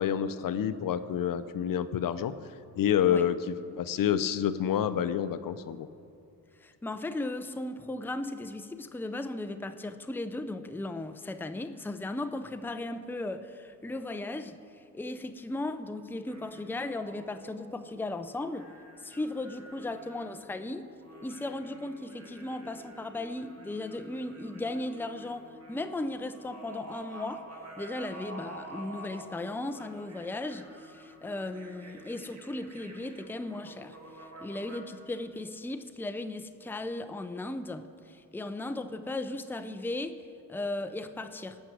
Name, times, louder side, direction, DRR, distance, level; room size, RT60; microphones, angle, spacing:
voice 1, 0.0-2.3 2.7-5.9, left 9 dB, 65° left, 0.7 m, -28 dB
voice 2, 6.6-14.6 14.9-18.7 19.0-20.9 21.2-27.5 27.8-34.0 34.4-41.6, left 2 dB, 5° left, 0.6 m, -36 dB
sound 1, 16.3-34.8, right 1 dB, 45° right, 2.4 m, -49 dB
18.0 x 6.2 x 8.2 m
cardioid pair, 85°, 36 cm